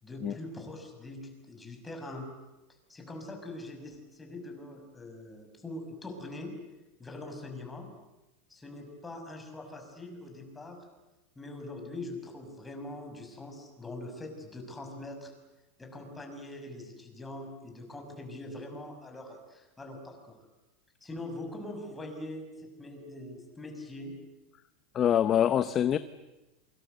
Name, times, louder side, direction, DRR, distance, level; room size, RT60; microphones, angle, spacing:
voice 1, 0.0-2.3 2.9-6.6 7.0-7.9 8.5-10.8 11.4-15.3 15.8-20.4 21.0-24.2, left 2 dB, 10° left, 6.1 m, -43 dB
voice 2, 24.9-26.0, left 9 dB, 30° left, 0.9 m, -24 dB
28.0 x 25.0 x 8.0 m
supercardioid pair, 145°, 0 cm